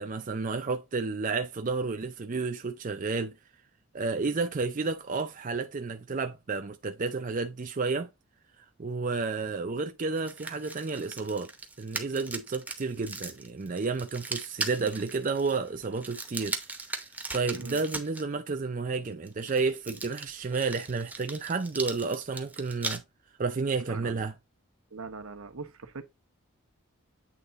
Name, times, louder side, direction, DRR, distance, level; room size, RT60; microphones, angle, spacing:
voice 1, 0.0-3.4 3.9-8.1 8.8-11.5 11.8-16.6 17.0-17.1 17.3-23.0 23.4-24.3, right 4 dB, 35° right, 0.5 m, -31 dB
sound 1, 10.2-18.2 19.3-23.0, right 3 dB, 5° right, 0.8 m, -39 dB
voice 2, 23.9-24.3 24.9-26.0, right 4 dB, 75° right, 1.1 m, -42 dB
8.4 x 3.4 x 4.0 m
head